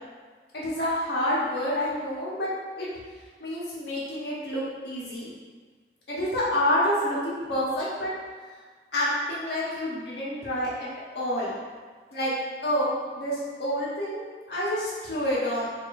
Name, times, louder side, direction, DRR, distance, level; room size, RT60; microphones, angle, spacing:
voice 1, 0.5-2.5 2.8-2.9 3.4-5.3 6.1-8.1 8.9-10.9 11.1-11.5 12.1-12.3 12.6-15.7, left 1 dB, 70° left, -7 dB, 1.2 m, -28 dB
4.9 x 2.9 x 2.6 m, 1.5 s
head